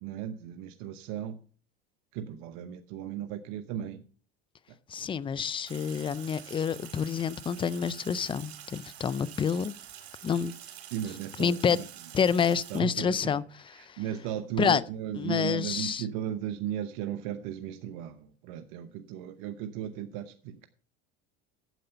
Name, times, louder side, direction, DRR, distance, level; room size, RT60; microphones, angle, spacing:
voice 1, 0.0-1.4 2.1-4.0 10.9-11.8 12.7-13.4 13.8-20.7, right 10 dB, 65° right, 0.9 m, -36 dB
voice 2, 4.9-9.7 10.2-10.5 11.4-11.8 12.1-14.0 14.6-14.8 15.1-16.1, left 7 dB, 15° left, 0.4 m, -28 dB
Sink (filling or washing), 5.7-12.8, right 10 dB, 85° right, 2.2 m, -47 dB
9.3 x 7.8 x 5.6 m
supercardioid pair, 110°, 31 cm